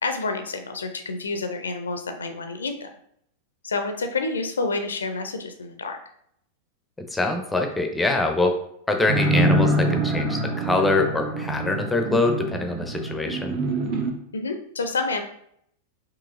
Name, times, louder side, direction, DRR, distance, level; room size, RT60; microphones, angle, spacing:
voice 1, 0.0-2.9 3.6-6.0 14.3-15.2, left 3 dB, 70° left, 6 dB, 0.4 m, -28 dB
voice 2, 7.1-8.6 8.9-13.6, left 2 dB, 5° left, 4 dB, 0.6 m, -24 dB
sound 1, 9.1-14.1, right 1 dB, 40° right, 0.8 m, -25 dB
4.7 x 3.0 x 2.5 m, 0.69 s
figure-of-eight pair, 90°, 0 cm